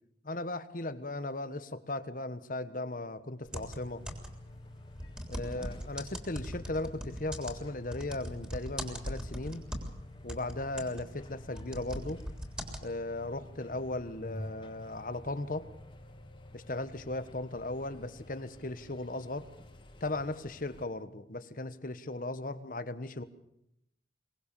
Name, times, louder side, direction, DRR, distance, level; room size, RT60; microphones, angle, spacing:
voice 1, 0.2-4.0 5.3-9.6 10.2-12.2 12.8-15.7 16.5-19.5 20.0-23.2, left 2 dB, 50° left, 12 dB, 1.2 m, -37 dB
sound 1, 3.5-20.8, left 1 dB, 30° left, 2.3 m, -49 dB
sound 2, 3.5-4.5 5.0-10.0 10.3-12.8, equal, 5° right, 3.5 m, -40 dB
23.5 x 19.0 x 7.0 m, 0.78 s
head